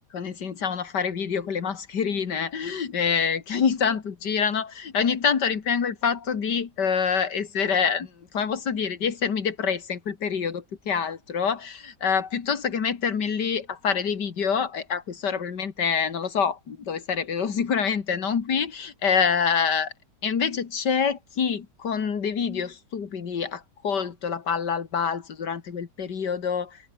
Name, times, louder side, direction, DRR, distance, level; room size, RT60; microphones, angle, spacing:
voice 1, 0.1-19.9 20.2-26.8, left 6 dB, 90° left, 2.5 m, -26 dB
omnidirectional pair, 1.8 m